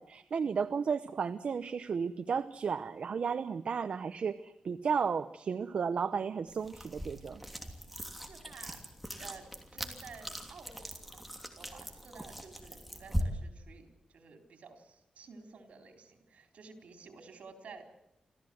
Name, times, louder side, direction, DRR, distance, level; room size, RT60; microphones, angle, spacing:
voice 1, 0.0-7.4, right 6 dB, 65° right, 10 dB, 0.8 m, -33 dB
sound 1, 6.5-13.2, equal, ahead, 3.0 m, -41 dB
voice 2, 8.3-8.8 9.2-9.5 9.7-11.2 11.5-17.8, right 5 dB, 80° right, 5 dB, 4.0 m, -52 dB
26.5 x 15.0 x 7.9 m, 0.85 s
wide cardioid pair, 110°, 2 cm